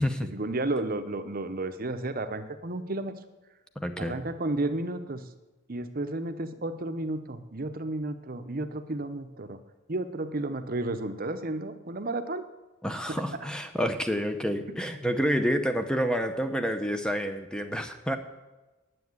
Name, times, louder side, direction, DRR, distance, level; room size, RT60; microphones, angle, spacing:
voice 1, 0.0-3.1 4.0-5.2 5.7-9.6 9.9-12.4 13.1-13.2, right 2 dB, 45° right, 10 dB, 0.8 m, -32 dB
voice 2, 3.8-4.2 12.8-18.2, equal, 5° left, 7 dB, 0.7 m, -28 dB
9.6 x 7.7 x 9.4 m, 1.1 s
head